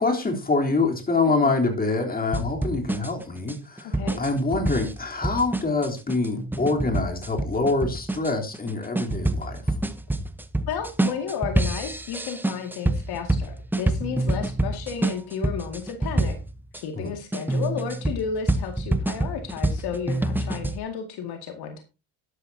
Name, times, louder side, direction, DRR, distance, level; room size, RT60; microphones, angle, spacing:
voice 1, 0.0-9.6 17.0-17.1, left 3 dB, 20° left, 1 dB, 3.5 m, -25 dB
sound 1, 2.3-16.8 17.3-20.8, right 2 dB, 5° right, 0.9 m, -27 dB
voice 2, 3.8-4.2 10.7-16.4 16.7-21.8, left 7 dB, 65° left, 5 dB, 2.2 m, -32 dB
12.0 x 11.5 x 2.8 m, 0.29 s
supercardioid pair, 100°, 41 cm